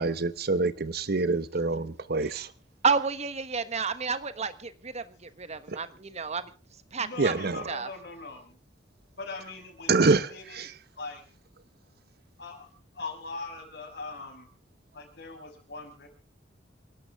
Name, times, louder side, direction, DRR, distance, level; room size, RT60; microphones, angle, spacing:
voice 1, 0.0-2.5 5.7-5.8 7.2-7.7 9.9-10.8, right 3 dB, 60° right, 1.0 m, -26 dB
voice 2, 2.8-6.5 6.9-7.3 7.7-7.9, right 5 dB, 40° right, 1.2 m, -30 dB
voice 3, 7.0-8.6 9.2-10.0 10.3-10.7 11.0-11.2 12.4-12.7 12.9-14.5 14.9-16.1, left 3 dB, 65° left, 6.2 m, -41 dB
28.0 x 12.0 x 3.6 m
head